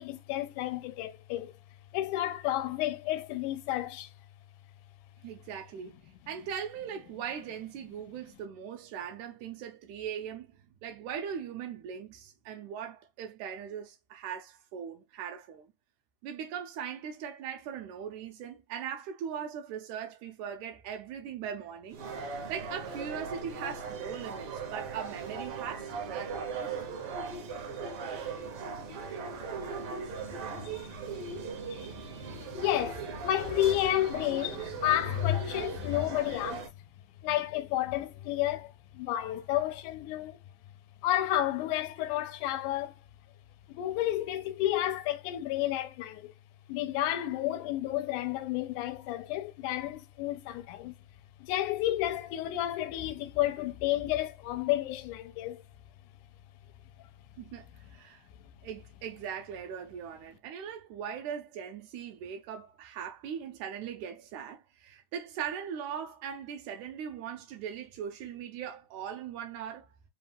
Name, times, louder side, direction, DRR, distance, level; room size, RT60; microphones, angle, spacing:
voice 1, 0.0-1.5 1.9-4.1 30.2-30.3 30.6-30.9 31.7-31.9 32.5-36.7 37.2-40.4 41.0-42.9 43.7-46.3 46.7-50.9 51.4-55.6, left 13 dB, 90° left, 2.0 m, -31 dB
voice 2, 5.2-15.7 16.2-26.4 57.4-58.3 58.6-69.9, right 8 dB, 85° right, 2.0 m, -40 dB
sound 1, 21.9-36.7, right 5 dB, 70° right, 1.4 m, -39 dB
4.9 x 2.3 x 3.3 m
omnidirectional pair, 3.5 m